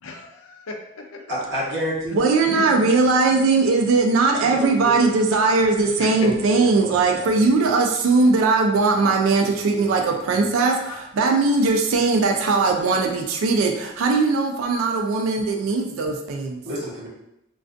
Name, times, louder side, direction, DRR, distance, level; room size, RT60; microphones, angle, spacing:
voice 1, 0.0-1.4 2.5-2.8 6.0-6.3 10.9-11.0, left 3 dB, 90° left, 2 dB, 0.4 m, -35 dB
voice 2, 1.3-2.2 4.4-5.1 6.0-7.0 7.2-7.5 16.6-17.1, equal, 60° right, -7 dB, 0.9 m, -30 dB
voice 3, 2.1-16.6, right 3 dB, 90° right, 2 dB, 0.3 m, -19 dB
2.4 x 2.3 x 2.4 m, 0.86 s
head